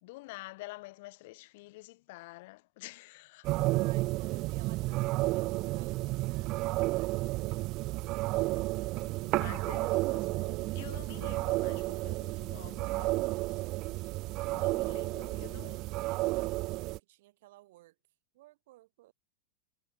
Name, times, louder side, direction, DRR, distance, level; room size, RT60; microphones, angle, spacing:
voice 1, 0.0-3.6 9.2-13.7 14.5-15.9, left 22 dB, 60° left, 1.3 m, -49 dB
sound 1, 3.4-17.0, right 20 dB, 45° right, 0.4 m, -32 dB
voice 2, 3.6-8.7 14.7-15.7 16.1-18.0 18.3-19.1, right 18 dB, 65° right, 5.9 m, -57 dB
hypercardioid pair, 125°, 0 cm